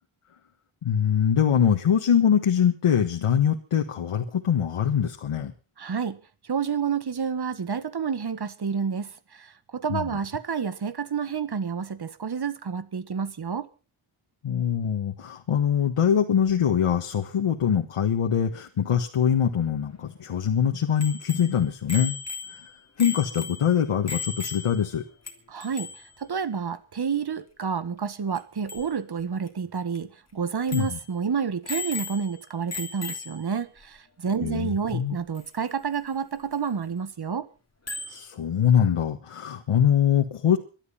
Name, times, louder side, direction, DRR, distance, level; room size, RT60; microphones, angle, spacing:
voice 1, 0.8-5.5 9.9-10.1 14.4-22.2 23.0-25.0 30.7-31.0 34.4-35.2 38.1-40.6, left 8 dB, 90° left, 1.6 m, -23 dB
voice 2, 5.8-6.2 6.4-13.7 25.5-25.9 26.2-37.5, right 6 dB, 50° right, 1.6 m, -29 dB
Bicycle bell, 21.0-25.0 25.3-25.4 25.6-26.1 28.4-28.5 28.7-28.9 29.5-29.6 30.0-30.1 30.7-31.1 31.7-32.4 32.7-33.5 35.4-35.5 37.9-38.2, left 4 dB, 30° left, 3.2 m, -36 dB
19.0 x 12.5 x 5.8 m
wide cardioid pair, 90°, 50 cm